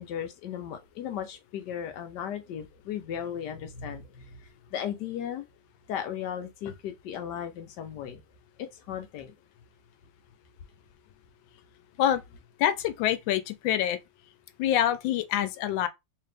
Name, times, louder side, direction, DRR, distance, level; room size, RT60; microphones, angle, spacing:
voice 1, 0.0-5.5 5.9-8.2 8.6-9.3, left 9 dB, 70° left, 1.2 m, -36 dB
voice 2, 12.6-14.0 14.6-15.9, left 11 dB, 90° left, 1.3 m, -26 dB
3.3 x 2.8 x 3.3 m
omnidirectional pair, 2.0 m